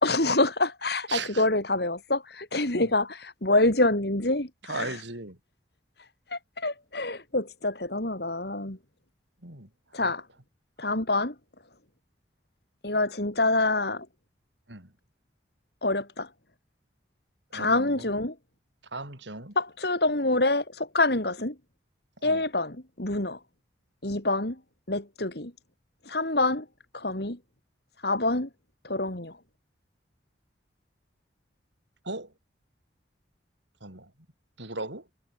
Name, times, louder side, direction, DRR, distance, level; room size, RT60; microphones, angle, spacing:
voice 1, 0.0-5.0 6.3-8.8 9.9-10.2 10.8-11.3 12.8-14.1 15.8-16.3 17.5-18.3 19.6-21.5 22.2-23.4 24.0-24.6 24.9-25.5 26.0-26.6 26.9-27.4 28.0-28.5 28.8-29.3, left 2 dB, 60° left, 3.0 m, -26 dB
voice 2, 1.1-1.4 2.7-2.9 4.7-5.4 9.4-9.7 10.0-10.1 14.7-14.9 17.5-18.1 18.9-19.6 22.2-22.4 32.1-32.3 33.8-34.1 34.6-35.0, right 3 dB, 75° right, 6.9 m, -37 dB
head